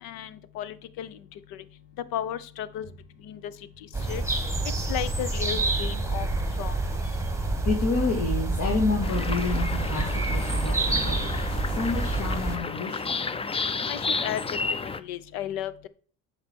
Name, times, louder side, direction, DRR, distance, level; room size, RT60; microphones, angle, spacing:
voice 1, 0.0-1.2 1.5-1.6 2.1-2.9 3.2-3.5 4.1-4.2 4.9-6.3 6.6-6.8 13.9-15.9, left 11 dB, 80° left, 16 dB, 0.8 m, -34 dB
sound 1, 3.9-12.6, right 2 dB, 10° right, 1.5 m, -28 dB
voice 2, 7.6-13.2, left 4 dB, 50° left, 0 dB, 2.3 m, -29 dB
sound 2, 9.0-15.0, left 4 dB, 15° left, 0.4 m, -32 dB
9.0 x 5.7 x 4.5 m, 0.43 s
supercardioid pair, 95°, 36 cm